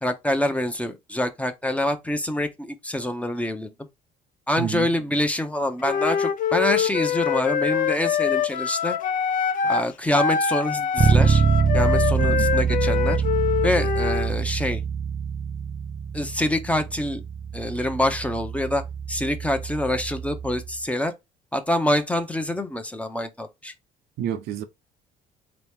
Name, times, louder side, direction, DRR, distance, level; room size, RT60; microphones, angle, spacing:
voice 1, 0.0-3.7 4.5-9.0 9.6-11.4 11.7-13.2 13.6-14.8 16.1-17.2 17.5-18.8 19.1-21.1 21.5-23.7, left 1 dB, 10° left, 0.7 m, -26 dB
voice 2, 4.6-4.9 12.2-12.5 24.2-24.6, right 9 dB, 80° right, 0.7 m, -29 dB
Wind instrument woodwind instrument, 5.8-9.9 10.1-14.3, left 7 dB, 55° left, 0.5 m, -25 dB
Bass guitar, 11.0-20.8, right 6 dB, 25° right, 0.5 m, -25 dB
3.7 x 3.0 x 3.5 m
cardioid pair, 110°, 17 cm